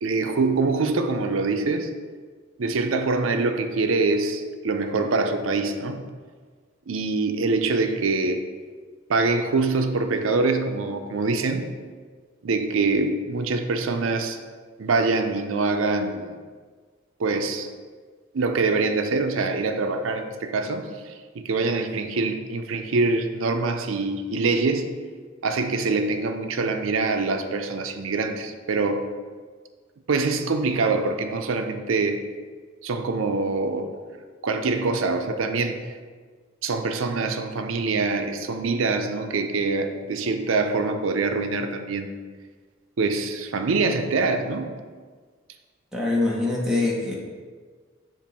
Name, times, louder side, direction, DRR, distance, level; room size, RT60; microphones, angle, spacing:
voice 1, 0.0-1.9 2.6-6.0 6.9-8.4 9.1-11.7 12.4-14.4 14.8-16.4 17.2-17.7 18.3-25.0 25.4-29.1 30.1-32.2 32.8-33.9 34.4-35.8 36.6-42.1 43.0-44.7, right 3 dB, 85° right, 6 dB, 0.5 m, -24 dB
voice 2, 45.9-47.1, left 2 dB, 5° right, -4 dB, 1.0 m, -24 dB
7.2 x 2.5 x 5.3 m, 1.6 s
head